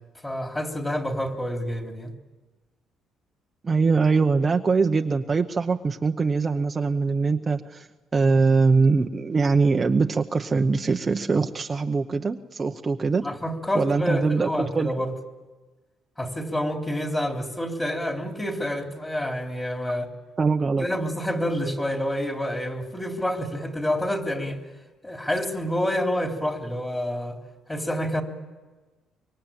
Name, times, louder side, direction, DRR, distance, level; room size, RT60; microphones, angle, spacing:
voice 1, 0.2-2.1 13.2-15.1 16.2-20.1 20.8-24.6 25.0-27.4 27.7-28.2, equal, 10° left, 3 dB, 3.4 m, -28 dB
voice 2, 3.6-13.3 13.7-14.9 20.4-20.9, right 4 dB, 25° right, 4 dB, 0.9 m, -22 dB
25.5 x 23.5 x 8.9 m, 1.3 s
cardioid pair, 120°, 0 cm